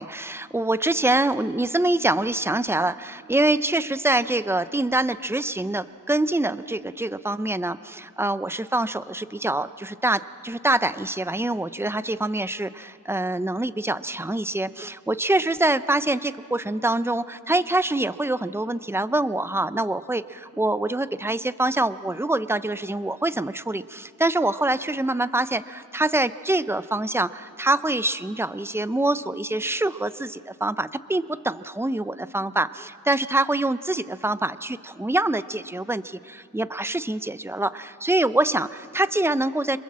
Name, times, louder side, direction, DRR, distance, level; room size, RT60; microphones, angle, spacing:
voice 1, 0.0-39.8, right 2 dB, 5° right, 13 dB, 0.6 m, -25 dB
29.0 x 25.5 x 7.5 m, 2.6 s
wide cardioid pair, 130°, 33 cm